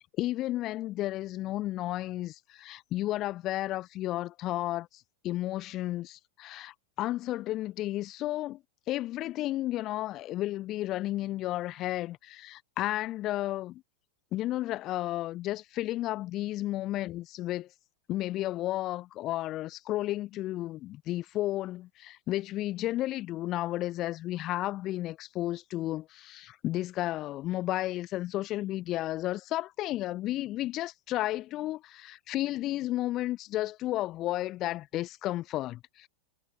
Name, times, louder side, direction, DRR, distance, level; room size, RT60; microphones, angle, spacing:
voice 1, 0.0-4.9 5.2-8.6 8.9-13.8 14.3-17.7 18.1-36.1, left 15 dB, 35° left, 1.1 m, -33 dB
figure-of-eight pair, 90°, 0 cm